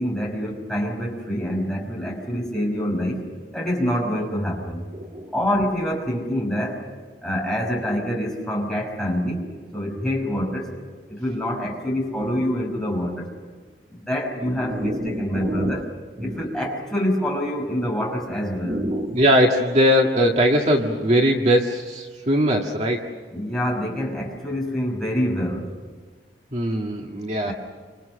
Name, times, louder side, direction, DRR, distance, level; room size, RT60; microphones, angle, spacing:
voice 1, 0.0-3.2 3.5-4.8 5.3-6.8 7.2-9.5 9.7-10.7 11.1-13.3 13.9-15.9 16.2-18.9 23.3-25.8 27.4-27.5, equal, 5° left, -2 dB, 5.6 m, -26 dB
voice 2, 14.6-15.8 16.2-16.4 18.6-23.1 26.5-27.5, equal, 40° right, 1 dB, 1.9 m, -21 dB
29.5 x 27.0 x 6.5 m, 1.5 s
head